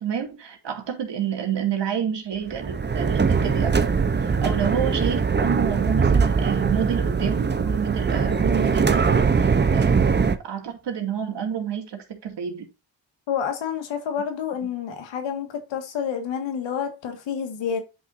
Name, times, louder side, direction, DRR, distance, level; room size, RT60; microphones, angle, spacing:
voice 1, 0.0-10.1 10.5-12.7, right 8 dB, 70° right, 2.4 m, -29 dB
sound 1, 2.5-10.4, right 5 dB, 25° right, 0.7 m, -21 dB
voice 2, 13.3-17.8, left 7 dB, 90° left, 1.8 m, -29 dB
9.9 x 5.8 x 2.6 m
cardioid pair, 85°, 44 cm